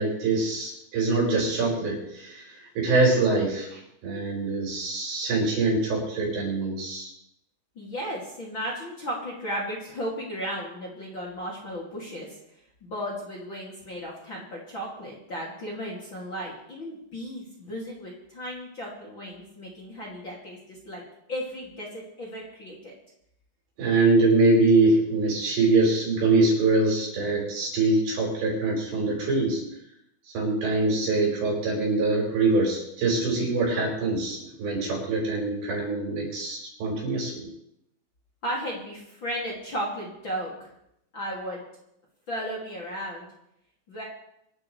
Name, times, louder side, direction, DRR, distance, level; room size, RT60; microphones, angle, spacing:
voice 1, 0.0-2.4 2.8-7.1 23.8-29.6 30.3-37.5, right 3 dB, 75° right, -2 dB, 7.5 m, -24 dB
voice 2, 7.7-12.4 12.8-21.0 21.3-22.9 38.4-40.7 41.1-41.6 42.3-43.3 43.9-44.0, equal, 30° left, -4 dB, 2.9 m, -35 dB
25.5 x 12.0 x 3.4 m, 0.78 s
omnidirectional pair, 5.0 m